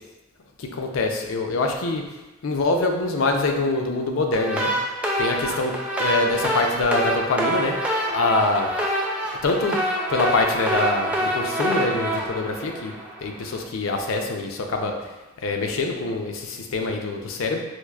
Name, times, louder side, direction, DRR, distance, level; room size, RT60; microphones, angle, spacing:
voice 1, 0.6-2.1 2.4-4.7 5.2-5.7 6.0-7.8 8.1-8.7 9.4-9.8 10.1-12.9 13.2-14.9 15.4-17.6, left 3 dB, 85° left, 3 dB, 0.5 m, -24 dB
sound 1, 4.3-13.4, right 1 dB, 5° right, 0.3 m, -26 dB
4.5 x 2.4 x 2.3 m, 1.1 s
head